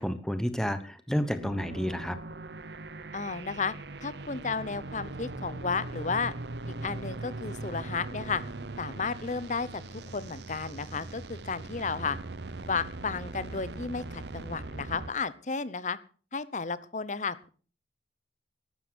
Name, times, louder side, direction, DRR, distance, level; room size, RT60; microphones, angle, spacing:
voice 1, 0.0-2.2, equal, 5° left, 10 dB, 1.0 m, -30 dB
sound 1, 1.4-15.1, right 2 dB, 65° right, 0.8 m, -40 dB
voice 2, 3.1-3.7 4.0-6.3 6.7-8.4 8.8-9.8 10.1-12.2 12.7-16.0 16.3-17.5, left 4 dB, 40° left, 16 dB, 1.0 m, -33 dB
12.5 x 12.0 x 6.3 m, 0.41 s
head